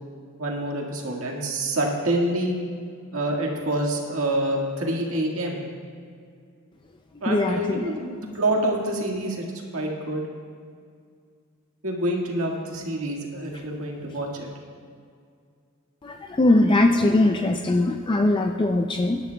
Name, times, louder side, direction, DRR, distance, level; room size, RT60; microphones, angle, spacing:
voice 1, 0.4-2.5 3.1-5.6 7.2-9.4 9.7-10.3 11.8-14.5, right 1 dB, 80° right, 0 dB, 1.8 m, -27 dB
voice 2, 7.3-7.8 16.0-19.2, left 2 dB, 20° left, 4 dB, 0.4 m, -21 dB
19.5 x 10.5 x 2.3 m, 2.2 s
head